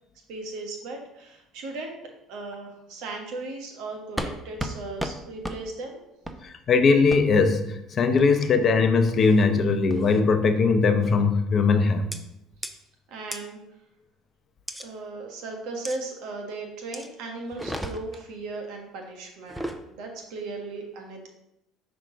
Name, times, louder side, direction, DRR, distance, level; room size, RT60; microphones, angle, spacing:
voice 1, 0.3-2.0 2.3-6.0 13.1-13.6 14.8-21.3, right 3 dB, 70° right, 2 dB, 1.4 m, -37 dB
sound 1, 4.2-4.3 4.6-4.7 5.0-5.1 5.4-5.6 6.2-6.4 7.1-7.2 8.2-8.5 9.1-9.4 9.9-10.2 11.0-11.3 12.1-12.2 12.6-12.7 13.3-13.4 14.7-14.9 15.8-16.0 16.9-17.1 17.5-18.2 19.4-19.8, right 1 dB, 5° right, 0.7 m, -34 dB
voice 2, 6.4-12.1, left 4 dB, 45° left, 8 dB, 0.8 m, -20 dB
5.8 x 3.7 x 5.1 m, 0.84 s
hypercardioid pair, 70°, 0 cm